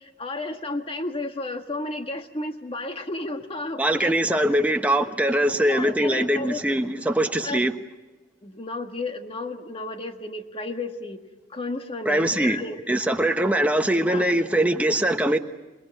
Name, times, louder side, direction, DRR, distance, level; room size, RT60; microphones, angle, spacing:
voice 1, 0.2-4.5 5.6-6.9 7.4-7.6 8.4-11.2 11.5-12.8 14.0-14.2, left 2 dB, 30° left, 1.6 m, -32 dB
voice 2, 3.8-7.8 12.0-12.6 12.9-15.4, right 1 dB, 10° right, 1.1 m, -22 dB
28.0 x 19.5 x 9.2 m
head